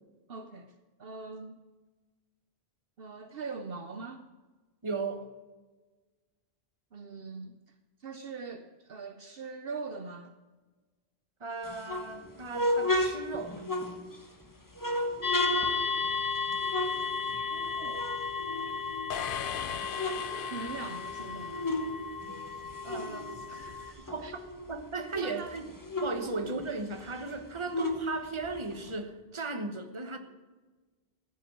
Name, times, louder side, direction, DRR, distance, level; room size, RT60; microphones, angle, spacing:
voice 1, 0.3-0.7 1.0-1.6 3.0-4.2 6.9-7.6 8.0-10.3 17.2-18.0 20.3-21.7 22.8-24.3 25.1-25.6 26.2-26.4, right 4 dB, 60° right, 8 dB, 0.9 m, -42 dB
voice 2, 4.8-5.3 11.4-13.7 22.9-23.0 24.1-24.4 24.7-25.6 26.0-30.2, right 3 dB, 25° right, 7 dB, 1.1 m, -36 dB
sound 1, 11.6-14.3 14.8-17.7 17.9-19.3 19.7-21.9 22.2-24.8 25.1-25.2 25.5-28.9, left 1 dB, 20° left, 1.2 m, -34 dB
sound 2, 15.2-23.9, left 5 dB, 40° left, 1.2 m, -34 dB
sound 3, 19.1-21.9, left 10 dB, 60° left, 0.7 m, -39 dB
14.5 x 6.1 x 8.5 m, 1.3 s
omnidirectional pair, 1.1 m